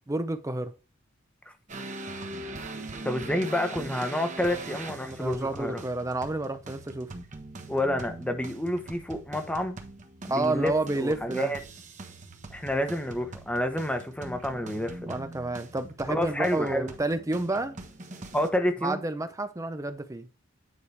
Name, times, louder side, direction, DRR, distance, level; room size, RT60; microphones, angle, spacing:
voice 1, 0.1-0.7 5.1-7.1 10.3-11.5 15.1-17.8 18.8-20.3, right 2 dB, 15° right, 0.6 m, -30 dB
sound 1, 1.7-18.5, right 2 dB, 40° right, 1.2 m, -42 dB
voice 2, 3.0-5.8 7.7-9.8 10.3-11.6 12.5-15.2 16.1-16.9 18.3-19.0, left 1 dB, 5° left, 1.0 m, -29 dB
9.6 x 4.9 x 3.3 m
head